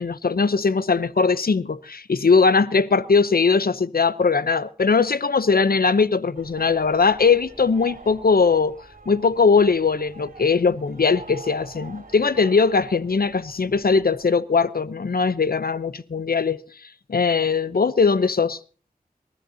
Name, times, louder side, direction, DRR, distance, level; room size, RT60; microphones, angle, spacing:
voice 1, 0.0-8.8 9.1-16.6 17.1-18.6, left 4 dB, 80° left, 0.7 m, -20 dB
sound 1, 6.3-14.3, right 3 dB, 65° right, 3.4 m, -45 dB
27.0 x 13.0 x 2.8 m
wide cardioid pair, 50°, 15 cm